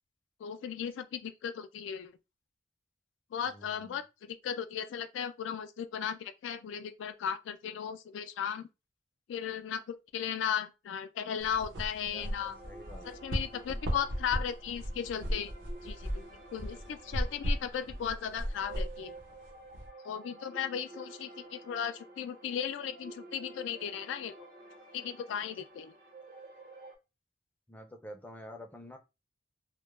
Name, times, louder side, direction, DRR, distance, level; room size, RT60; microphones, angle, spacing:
voice 1, 0.4-2.1 3.3-8.7 9.3-12.6 13.0-15.5 15.8-19.1 20.0-24.4 24.9-25.9, left 8 dB, 90° left, 0.3 m, -36 dB
voice 2, 3.4-4.0 12.1-13.1 27.7-29.0, equal, 10° left, 0.4 m, -48 dB
sound 1, 11.4-19.9, equal, 80° right, 0.8 m, -36 dB
sound 2, 12.2-26.9, right 2 dB, 50° right, 0.5 m, -51 dB
2.2 x 2.0 x 3.0 m
head